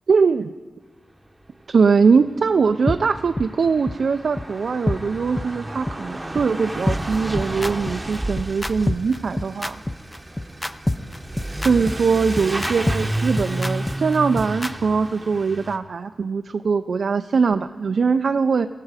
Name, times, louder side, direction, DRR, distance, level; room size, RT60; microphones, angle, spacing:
voice 1, 0.1-0.5 1.7-9.8 11.6-18.7, right 5 dB, 65° right, 8 dB, 0.3 m, -21 dB
Truck / Accelerating revving vroom, 2.1-2.2 2.4-15.8, right 1 dB, 15° right, 0.8 m, -31 dB
sound 1, 2.9-3.0 3.4-3.5 3.9-4.0 4.4-4.5 4.9-5.0 5.4-5.5 5.9-6.0 6.4-6.5 6.9-14.7, left 1 dB, 15° left, 0.4 m, -25 dB
20.5 x 7.5 x 4.8 m, 1.4 s
wide cardioid pair, 150°, 0 cm